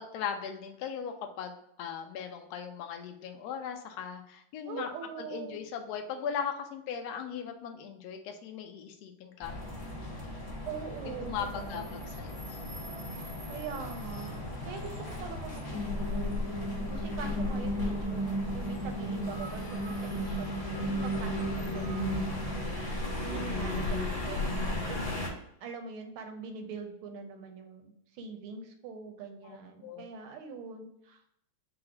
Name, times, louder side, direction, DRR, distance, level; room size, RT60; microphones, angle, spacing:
voice 1, 0.1-4.9 5.2-9.6 10.1-10.2 11.0-11.8 12.2-12.5 13.2-13.4 29.4-29.6 29.8-30.0, left 7 dB, 70° left, 5 dB, 0.9 m, -38 dB
voice 2, 4.7-5.6 10.7-12.0 13.5-16.4 16.9-18.2 18.5-25.3 25.6-31.3, right 5 dB, 85° right, 4 dB, 1.6 m, -43 dB
sound 1, 9.4-25.3, left 1 dB, 15° left, 0.7 m, -39 dB
sound 2, 15.7-25.2, equal, 90° left, 1.6 m, -34 dB
4.7 x 2.1 x 4.7 m, 0.74 s
omnidirectional pair, 2.3 m